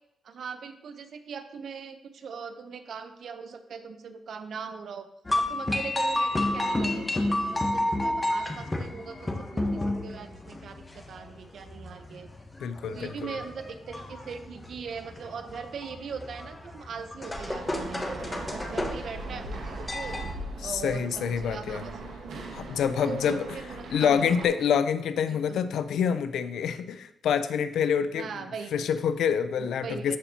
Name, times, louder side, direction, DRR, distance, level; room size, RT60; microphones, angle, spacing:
voice 1, 0.2-5.1 5.3-12.3 12.9-20.2 20.6-22.2 23.0-24.4 25.3-25.6 28.1-28.8 29.6-30.2, right 6 dB, 65° right, 9 dB, 0.6 m, -40 dB
sound 1, 5.2-20.3, left 1 dB, 20° left, 1.0 m, -31 dB
voice 2, 12.6-13.4 20.6-21.8 22.5-23.5 23.9-28.3 28.7-30.2, left 7 dB, 85° left, 12 dB, 0.4 m, -27 dB
sound 2, 17.3-24.5, right 2 dB, 85° right, 1.2 m, -39 dB
12.5 x 4.3 x 2.8 m, 0.82 s
cardioid pair, 90°, 0 cm